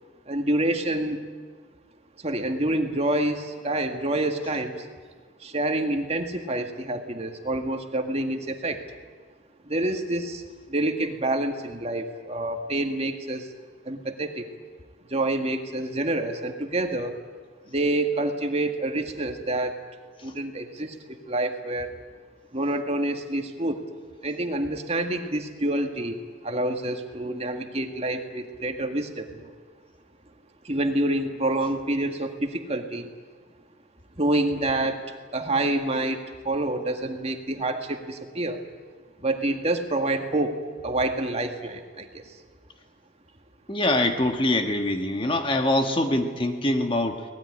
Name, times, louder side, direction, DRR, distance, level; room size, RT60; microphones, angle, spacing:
voice 1, 0.3-1.2 2.2-4.9 5.4-8.8 9.6-13.5 13.8-14.5 15.1-17.2 17.7-19.8 20.2-21.9 22.5-23.8 24.2-29.5 30.6-33.1 34.2-35.0 35.3-38.6 39.2-42.3, right 1 dB, 35° right, 5 dB, 1.9 m, -27 dB
voice 2, 43.7-47.2, left 1 dB, 25° left, 5 dB, 1.6 m, -24 dB
24.0 x 19.0 x 10.0 m, 1.5 s
head